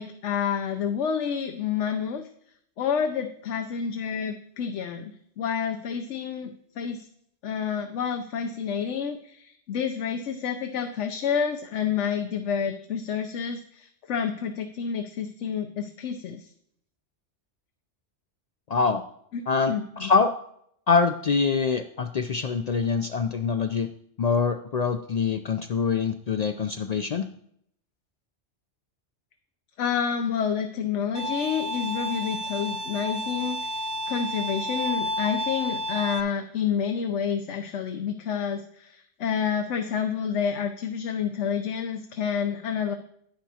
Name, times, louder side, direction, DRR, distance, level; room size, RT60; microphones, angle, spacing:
voice 1, 0.0-2.3 2.8-7.1 7.4-16.5 19.3-20.1 29.8-42.9, left 7 dB, 80° left, 6 dB, 1.0 m, -29 dB
voice 2, 18.7-19.0 19.5-20.3 20.9-23.9 24.2-27.3, left 5 dB, 65° left, 8 dB, 0.4 m, -24 dB
Bowed string instrument, 31.1-36.2, equal, 25° right, 0.4 m, -31 dB
10.0 x 10.0 x 2.8 m, 0.68 s
omnidirectional pair, 1.2 m